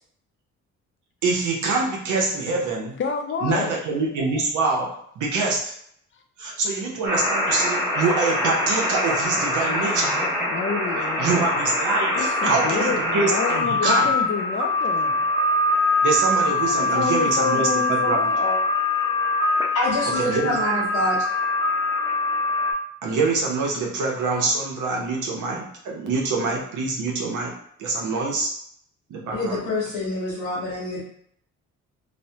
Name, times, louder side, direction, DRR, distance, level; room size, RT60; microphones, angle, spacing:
voice 1, 1.2-2.9 3.4-5.7 6.4-10.2 11.2-14.1 16.0-18.3 20.2-20.5 23.0-27.5 27.8-28.5 29.1-29.6, right 3 dB, 80° right, -1 dB, 0.8 m, -25 dB
voice 2, 3.0-3.8 6.5-6.6 9.7-11.4 12.2-15.3 16.7-18.6, left 5 dB, 40° left, 5 dB, 0.5 m, -29 dB
sound 1, 7.1-22.7, left 1 dB, 10° right, 0.7 m, -23 dB
voice 3, 19.7-21.2 29.3-31.0, left 2 dB, 90° left, -8 dB, 1.0 m, -26 dB
3.1 x 2.1 x 2.7 m, 0.67 s
cardioid pair, 90°, 30 cm